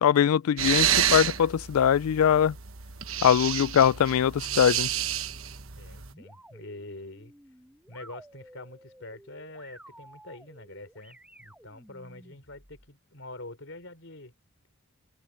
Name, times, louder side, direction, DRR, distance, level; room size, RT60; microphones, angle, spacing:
voice 1, 0.0-2.5 3.2-4.9, left 9 dB, 90° left, 0.3 m, -22 dB
sound 1, 0.6-6.1, right 10 dB, 70° right, 1.2 m, -29 dB
sound 2, 4.3-12.9, right 1 dB, 5° right, 2.0 m, -53 dB
voice 2, 5.8-7.3 7.9-14.3, left 2 dB, 60° left, 4.8 m, -45 dB
open air
head